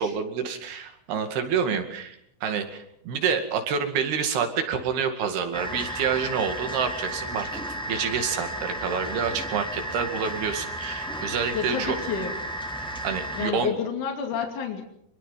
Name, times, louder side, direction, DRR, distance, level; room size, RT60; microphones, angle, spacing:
voice 1, 0.0-2.2 2.4-12.0 13.0-13.7, right 6 dB, 85° right, 6 dB, 4.2 m, -28 dB
sound 1, 5.5-13.5, right 1 dB, ahead, 1.4 m, -33 dB
voice 2, 11.5-12.4 13.3-14.8, left 7 dB, 55° left, 3 dB, 3.8 m, -29 dB
25.5 x 22.0 x 5.8 m, 0.72 s
omnidirectional pair, 4.4 m